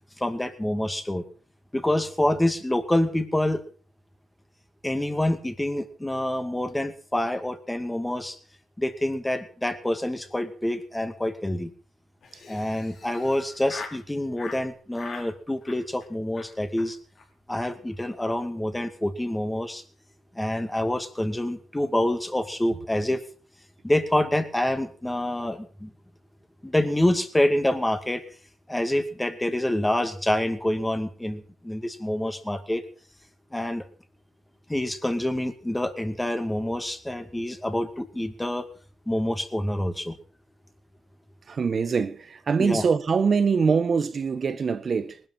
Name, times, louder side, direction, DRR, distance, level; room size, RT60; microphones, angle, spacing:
voice 1, 0.2-1.2 1.7-3.6 4.8-8.4 8.8-11.7 12.5-17.0 17.5-19.8 20.3-23.2 23.8-25.9 26.6-28.2 28.7-32.8 33.5-33.8 34.7-38.7 39.1-40.2 42.6-42.8, left 1 dB, 10° left, 2.4 m, -27 dB
Laughter, 12.2-14.0 14.4-14.6 14.9-15.3 15.6-16.1 16.3-16.5 16.8-16.9 17.1-17.2 17.5-17.6 17.9-18.2, left 4 dB, 55° left, 5.1 m, -42 dB
voice 2, 41.5-45.2, right 5 dB, 40° right, 1.4 m, -23 dB
19.5 x 12.5 x 5.7 m
cardioid pair, 90°, 0 cm